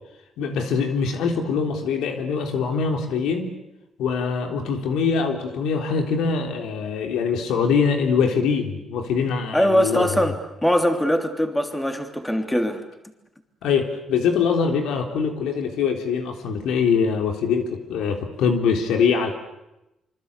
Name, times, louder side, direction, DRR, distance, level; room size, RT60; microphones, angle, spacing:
voice 1, 0.4-3.5 4.0-10.3 13.6-19.3, left 5 dB, 85° left, 4 dB, 3.6 m, -23 dB
voice 2, 9.5-12.8, equal, 5° left, 5 dB, 3.2 m, -22 dB
25.5 x 25.5 x 8.4 m, 0.92 s
cardioid pair, 90°, 0 cm